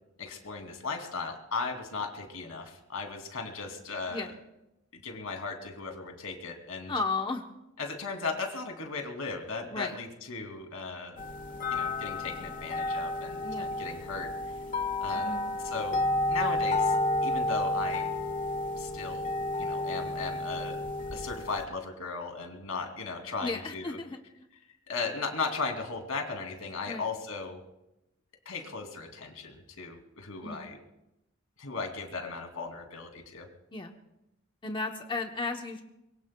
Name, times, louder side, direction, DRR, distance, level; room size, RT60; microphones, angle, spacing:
voice 1, 0.2-4.3 4.9-6.9 7.8-11.2 11.7-14.3 15.0-15.3 15.6-16.9 17.2-18.1 18.8-19.3 19.6-20.8 21.1-24.0 24.9-27.6 28.4-30.8 31.6-33.5, left 4 dB, 85° left, 3 dB, 2.8 m, -37 dB
voice 2, 6.9-7.4 9.7-9.9 13.4-13.7 15.1-15.5 23.4-24.2 26.9-27.0 30.4-30.7 33.7-33.9 34.6-35.8, left 3 dB, 25° left, 4 dB, 0.9 m, -34 dB
sound 1, 11.2-21.6, left 2 dB, 40° left, 1.5 m, -31 dB
24.0 x 22.5 x 2.3 m, 0.90 s
head